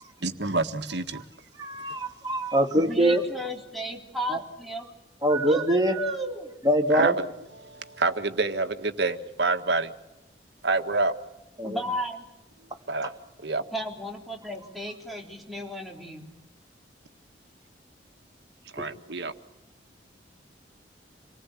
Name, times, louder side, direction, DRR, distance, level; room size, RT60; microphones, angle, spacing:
voice 1, 0.2-1.2 6.9-7.1 7.6-9.9 10.6-11.1 12.9-13.1 13.4-13.6 18.7-19.3, right 3 dB, 75° right, 8 dB, 1.7 m, -27 dB
voice 2, 1.6-3.2 4.3-4.4 5.2-6.1 6.6-7.2 11.6-11.8, right 1 dB, 20° right, 2 dB, 2.5 m, -23 dB
voice 3, 2.8-4.9 5.5-6.5 11.6-12.3 13.7-16.3, equal, ahead, 0 dB, 3.7 m, -34 dB
28.0 x 19.5 x 8.5 m, 0.95 s
head